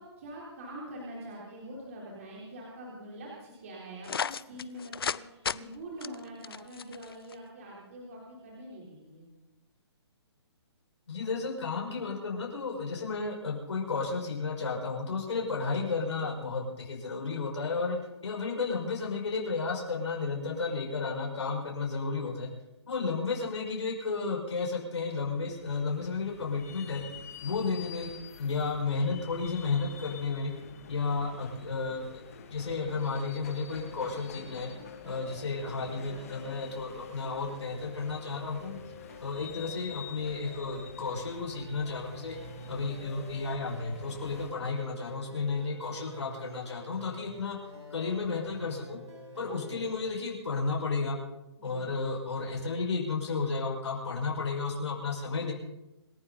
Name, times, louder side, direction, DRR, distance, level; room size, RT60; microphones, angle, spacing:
voice 1, 0.0-9.3 17.8-18.1 27.4-27.7 36.0-36.1 44.3-44.7 51.6-51.9, right 1 dB, 30° right, -5 dB, 3.8 m, -45 dB
sound 1, 4.0-5.2 5.4-5.6 6.0-7.3, left 7 dB, 60° left, 0.5 m, -33 dB
voice 2, 11.1-18.0 18.2-22.5 22.9-27.0 27.4-28.1 28.4-30.5 30.9-32.2 32.5-34.7 35.0-38.8 39.2-42.4 42.7-47.6 47.9-49.0 49.4-51.2 51.6-55.5, left 4 dB, 80° left, -2 dB, 5.6 m, -33 dB
sound 2, 25.1-44.5, left 7 dB, 30° left, 1.6 m, -49 dB
sound 3, 32.6-49.9, left 1 dB, 85° right, 6.7 m, -48 dB
27.0 x 11.5 x 4.0 m, 0.98 s
hypercardioid pair, 175°, 14 cm